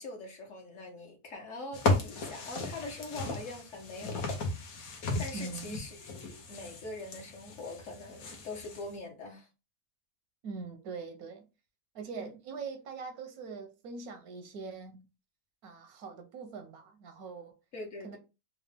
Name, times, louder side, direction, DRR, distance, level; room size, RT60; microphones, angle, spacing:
voice 1, 0.0-4.3 5.2-9.5 12.2-12.3 17.7-18.2, left 2 dB, 60° left, 1.5 m, -43 dB
sound 1, 1.7-8.9, left 3 dB, 75° left, 1.4 m, -35 dB
voice 2, 5.3-5.8 10.4-11.5 11.9-15.1 15.6-17.6 18.0-18.2, right 4 dB, 85° right, 1.2 m, -42 dB
4.1 x 2.4 x 3.3 m
omnidirectional pair, 1.5 m